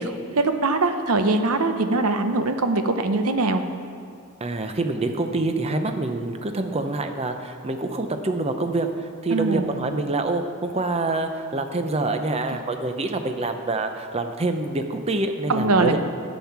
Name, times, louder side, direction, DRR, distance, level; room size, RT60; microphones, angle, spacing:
voice 1, 0.0-3.6 9.3-9.7 15.5-16.0, right 3 dB, 75° right, 7 dB, 0.8 m, -22 dB
voice 2, 4.4-16.0, right 2 dB, 25° right, 7 dB, 0.6 m, -26 dB
10.5 x 7.4 x 5.9 m, 2.2 s
head